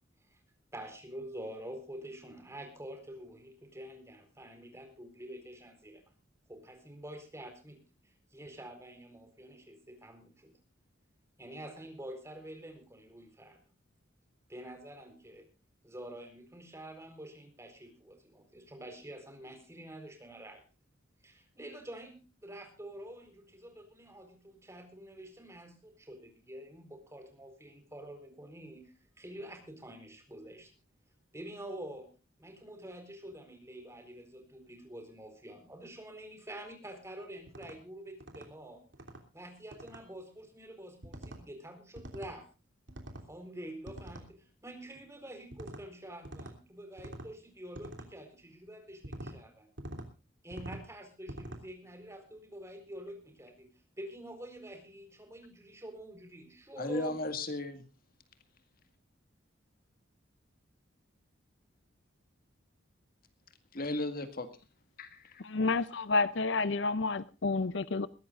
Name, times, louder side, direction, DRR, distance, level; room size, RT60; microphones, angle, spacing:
voice 1, 0.7-6.0 6.5-10.6 11.4-13.6 14.5-15.5 15.8-20.6 21.2-30.7 31.3-32.1 32.4-38.8 39.3-42.5 43.3-49.7 50.4-57.1, right 1 dB, 15° right, 4.3 m, -47 dB
sound 1, 37.5-37.8 38.2-38.5 38.9-39.2 39.7-40.0 41.0-41.4 42.0-42.3 42.9-43.3 43.9-44.3 45.5-45.8 46.2-46.6 47.0-47.3 47.7-48.1 49.0-49.4 49.8-50.1 50.5-50.8 51.3-51.6, right 1 dB, 65° right, 3.2 m, -45 dB
voice 2, 56.8-57.8 63.7-64.5 65.0-65.4, left 2 dB, 50° left, 1.9 m, -35 dB
voice 3, 65.4-68.1, left 3 dB, 65° left, 0.7 m, -30 dB
21.5 x 16.5 x 2.5 m
head